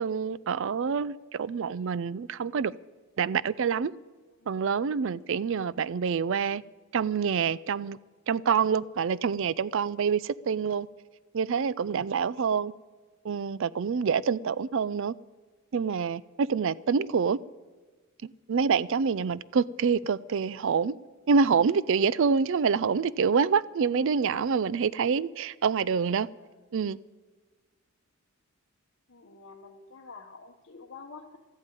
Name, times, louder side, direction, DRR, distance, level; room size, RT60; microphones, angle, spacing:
voice 1, 0.0-2.7 3.2-3.9 4.5-6.6 6.9-8.0 8.3-10.9 11.3-12.7 13.2-15.1 15.7-17.4 18.2-21.0 21.3-26.3 26.7-27.0, right 6 dB, 60° right, 0.4 m, -26 dB
voice 2, 29.1-31.4, left 4 dB, 55° left, 1.0 m, -48 dB
13.5 x 8.8 x 9.2 m
head